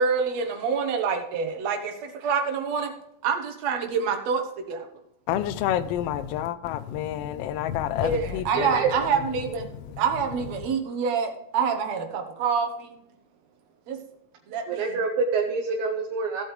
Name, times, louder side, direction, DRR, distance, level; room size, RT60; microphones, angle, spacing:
voice 1, 0.0-2.9 3.2-4.9 8.0-9.7 10.0-13.0 13.9-14.0 14.5-14.9, right 6 dB, 70° right, 5 dB, 2.4 m, -27 dB
voice 2, 5.3-8.7, left 11 dB, 85° left, 14 dB, 1.3 m, -28 dB
voice 3, 8.5-8.9 14.7-16.4, right 5 dB, 85° right, 1 dB, 2.5 m, -26 dB
16.5 x 8.4 x 3.2 m, 0.79 s
omnidirectional pair, 3.3 m